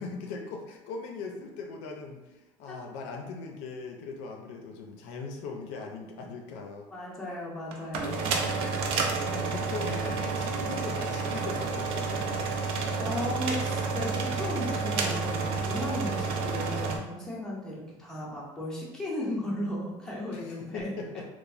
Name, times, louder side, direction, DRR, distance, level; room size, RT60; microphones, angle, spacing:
voice 1, 0.0-6.9 9.2-12.5 20.3-21.3, left 4 dB, 75° left, 2 dB, 0.4 m, -40 dB
voice 2, 6.9-8.4 13.0-21.0, left 1 dB, 5° left, -6 dB, 0.6 m, -35 dB
sound 1, 7.7-17.0, right 4 dB, 55° right, 0.4 m, -30 dB
3.0 x 2.1 x 2.4 m, 1.1 s
cardioid pair, 155°, 11 cm